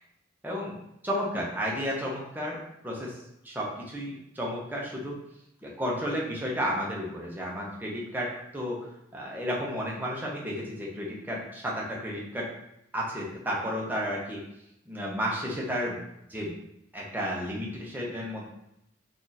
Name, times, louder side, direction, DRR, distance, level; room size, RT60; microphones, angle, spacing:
voice 1, 0.4-0.8 1.0-2.6 2.8-3.2 3.4-5.2 5.6-12.5 12.9-14.4 14.9-16.0 16.3-16.5 16.9-18.5, equal, 10° right, -4 dB, 0.7 m, -32 dB
2.8 x 2.5 x 3.8 m, 0.80 s
head